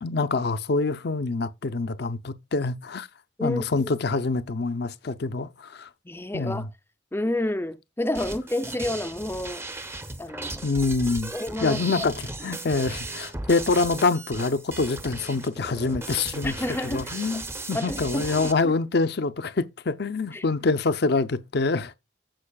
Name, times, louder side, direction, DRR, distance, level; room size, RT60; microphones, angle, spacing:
voice 1, 0.0-3.1 3.4-5.9 6.3-6.7 10.6-11.3 11.6-16.5 16.8-21.9, left 3 dB, 60° left, 0.6 m, -26 dB
voice 2, 3.4-3.9 6.1-6.7 7.1-9.7 10.2-10.6 11.3-11.8 16.4-17.2 17.7-18.2 18.6-18.7 20.3-20.4, left 1 dB, 10° left, 0.5 m, -29 dB
sound 1, 8.1-18.5, right 2 dB, 15° right, 0.8 m, -36 dB
15.0 x 5.5 x 2.3 m
head